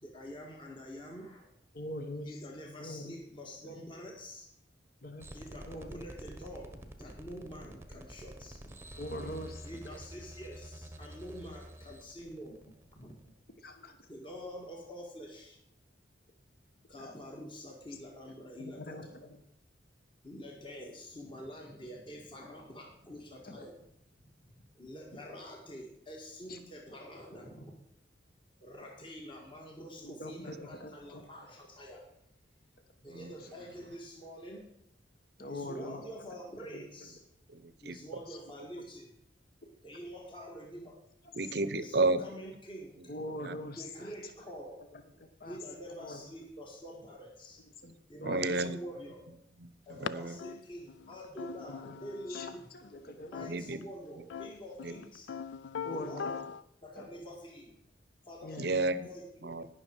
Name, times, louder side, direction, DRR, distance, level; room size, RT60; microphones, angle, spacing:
voice 1, 0.0-1.5 2.2-4.5 5.3-9.3 9.6-13.1 14.1-15.6 16.9-19.2 20.2-23.9 24.2-27.7 28.6-32.1 33.0-34.7 35.5-37.2 37.8-39.2 39.8-41.0 41.7-43.1 43.8-44.8 45.5-47.6 48.1-49.3 49.9-52.8 53.2-55.3 55.9-56.4 56.8-57.7 58.2-58.6 59.0-59.6, equal, 25° left, 0 dB, 1.7 m, -47 dB
voice 2, 1.7-2.4 2.8-3.1 3.6-3.8 5.0-5.3 5.7-5.9 9.0-9.7 13.6-13.9 17.0-17.1 18.6-19.1 26.5-26.6 30.0-31.2 35.4-36.0 36.7-36.8 43.1-44.1 45.4-45.6 46.0-46.2 47.8-47.9 48.2-48.7 51.8-51.9 52.3-52.5 53.0-53.3 55.8-56.3 57.0-57.1 58.4-58.7, left 1 dB, 50° left, 6 dB, 1.2 m, -42 dB
sound 1, 5.2-13.3, right 1 dB, 15° right, 0.9 m, -48 dB
voice 3, 37.5-38.0 41.3-42.2 43.4-43.6 48.2-48.8 49.6-50.4 53.5-53.9 54.8-54.9 58.6-59.1 59.4-59.7, right 3 dB, 55° right, 15 dB, 0.7 m, -32 dB
sound 2, 50.0-50.1 50.4-53.0 53.3-53.8 54.3-56.6, left 6 dB, 75° left, 0.4 m, -41 dB
18.5 x 6.4 x 4.6 m, 0.77 s
head